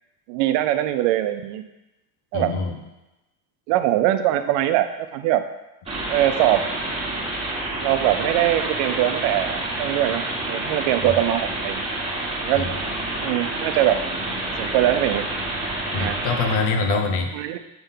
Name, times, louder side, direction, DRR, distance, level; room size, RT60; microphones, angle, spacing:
voice 1, 0.3-1.6 2.3-2.6 3.7-5.4 6.1-6.7 7.8-10.2 10.5-11.8 12.4-12.7 13.2-14.0 14.6-15.2 15.9-16.2 16.9-17.0 17.3-17.6, right 13 dB, 85° right, 9 dB, 0.8 m, -22 dB
voice 2, 2.3-2.8 11.0-11.1 12.5-12.7 15.9-17.3, left 4 dB, 80° left, 4 dB, 1.2 m, -24 dB
sound 1, 5.9-16.6, right 1 dB, 10° right, 1.6 m, -28 dB
7.9 x 3.5 x 5.6 m, 0.98 s
cardioid pair, 130°, 49 cm